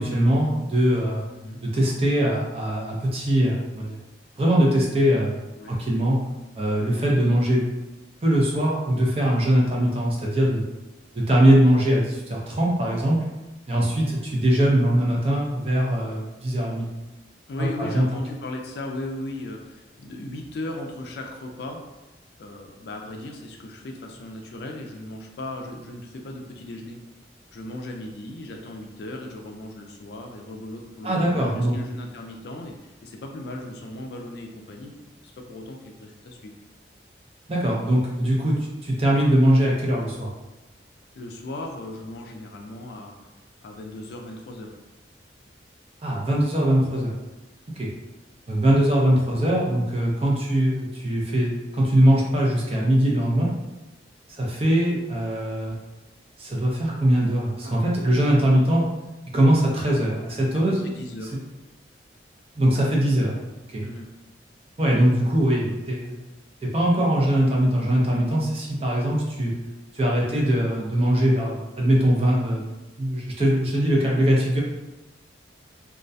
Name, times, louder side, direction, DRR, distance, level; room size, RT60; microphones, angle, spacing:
voice 1, 0.0-1.3 1.6-4.0 4.4-5.4 5.7-6.2 6.6-7.6 8.2-10.6 11.1-13.2 13.7-16.9 17.6-18.0 31.0-31.7 37.5-40.3 46.0-47.1 47.8-47.9 48.5-53.5 54.3-55.8 56.4-58.9 59.3-60.8 62.6-63.4 63.7-63.9 64.8-66.1 66.6-69.5 69.9-72.7 73.0-74.6, right 1 dB, 30° right, -3 dB, 0.5 m, -21 dB
voice 2, 17.5-21.8 22.4-27.0 27.5-35.0 35.2-36.5 41.2-43.2 43.6-44.7 60.5-61.4 63.8-64.1 70.2-70.4, left 1 dB, 65° left, 2 dB, 0.3 m, -37 dB
2.3 x 2.1 x 2.6 m, 1.0 s
head